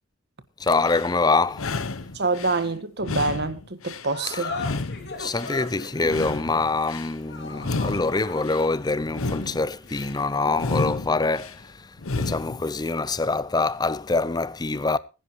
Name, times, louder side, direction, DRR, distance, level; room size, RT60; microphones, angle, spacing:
voice 1, 0.6-1.8 4.3-4.4 5.2-15.0, left 3 dB, 20° left, 0.5 m, -25 dB
sound 1, 0.7-1.1 1.5-2.6 3.0-4.1 4.5-5.6 6.0-7.1 7.6-8.7 9.1-10.1 10.5-11.6 12.0-12.6, left 3 dB, 70° left, 1.0 m, -31 dB
voice 2, 2.1-4.6, right 3 dB, 50° right, 1.5 m, -26 dB
sound 2, 4.1-10.8, left 3 dB, 50° left, 2.8 m, -39 dB
21.0 x 10.5 x 3.0 m
head